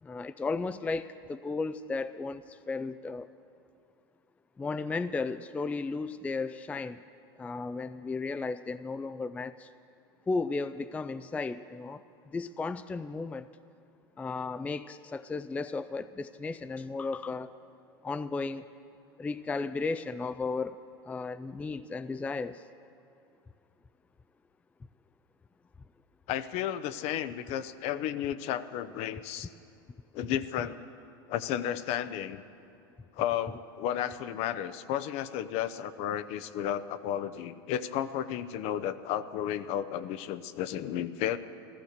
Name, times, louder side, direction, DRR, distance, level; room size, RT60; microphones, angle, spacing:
voice 1, 0.0-3.3 4.6-7.0 7.4-9.7 10.3-12.0 12.3-13.5 14.2-17.5 18.0-18.7 19.2-20.8 21.1-22.6, left 3 dB, 10° left, 12 dB, 0.3 m, -34 dB
voice 2, 26.3-29.5 30.1-30.8 31.3-32.4 33.2-41.4, left 10 dB, 55° left, 14 dB, 0.7 m, -33 dB
15.0 x 14.0 x 6.6 m, 2.5 s
hypercardioid pair, 105°, 13 cm